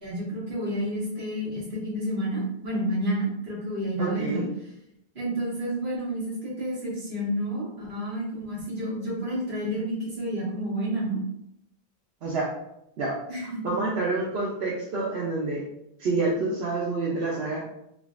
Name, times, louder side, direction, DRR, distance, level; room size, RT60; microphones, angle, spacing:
voice 1, 0.0-4.4 5.2-11.2 13.3-13.7, right 1 dB, 55° right, -8 dB, 1.8 m, -30 dB
voice 2, 4.0-4.5 12.2-12.5 13.0-15.6 16.0-17.6, right 3 dB, 85° right, -5 dB, 0.9 m, -28 dB
3.7 x 3.2 x 2.4 m, 0.78 s
omnidirectional pair, 1.0 m